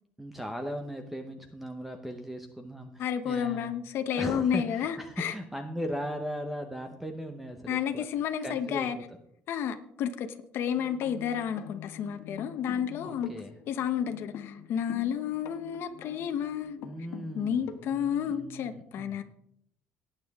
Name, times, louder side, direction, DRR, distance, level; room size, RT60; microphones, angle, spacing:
voice 1, 0.2-3.7 4.1-8.1 8.4-9.0 13.0-13.5 16.8-19.2, equal, 5° right, 5 dB, 0.8 m, -38 dB
voice 2, 3.0-5.3 7.7-9.0 9.5-10.3 10.5-13.3 13.7-16.8 17.3-19.2, left 8 dB, 55° left, 7 dB, 0.9 m, -31 dB
sound 1, 10.8-18.1, left 9 dB, 75° left, 1.3 m, -46 dB
18.5 x 9.0 x 3.6 m, 0.72 s
cardioid pair, 175°, 5 cm